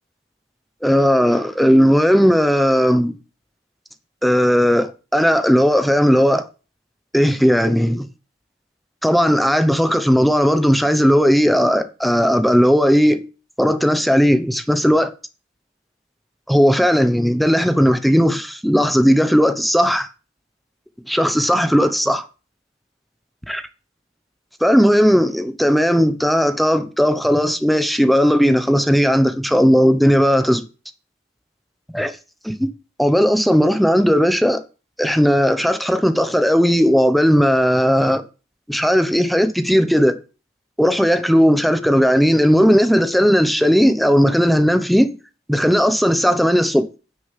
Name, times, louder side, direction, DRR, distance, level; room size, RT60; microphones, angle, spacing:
voice 1, 0.8-3.1 4.2-6.5 7.1-8.1 9.0-13.2 13.6-15.1 16.5-20.1 21.1-22.2 23.5-23.6 24.6-30.6 31.9-32.1 32.6-32.7 33.0-34.6 35.0-38.2 38.7-40.1 40.8-45.1 45.5-46.9, equal, ahead, 1.0 m, -16 dB
9.6 x 6.6 x 7.5 m
head